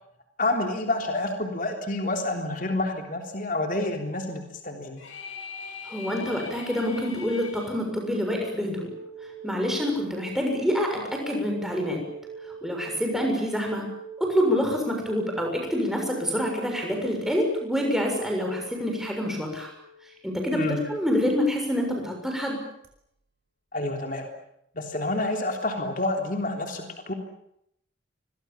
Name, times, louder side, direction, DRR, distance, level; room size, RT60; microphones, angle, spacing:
voice 1, 0.4-5.0 20.5-20.8 23.7-24.3 24.8-27.1, left 2 dB, 45° left, 3 dB, 3.5 m, -28 dB
sound 1, 5.0-7.8, left 5 dB, 85° left, 5.4 m, -41 dB
voice 2, 5.9-8.9 9.4-12.0 12.6-13.9 14.2-19.7 20.2-22.6, equal, ahead, 1 dB, 6.9 m, -27 dB
sound 2, 8.6-21.1 22.8-22.9, right 6 dB, 55° right, 5.3 m, -42 dB
29.0 x 24.0 x 7.3 m, 0.76 s
head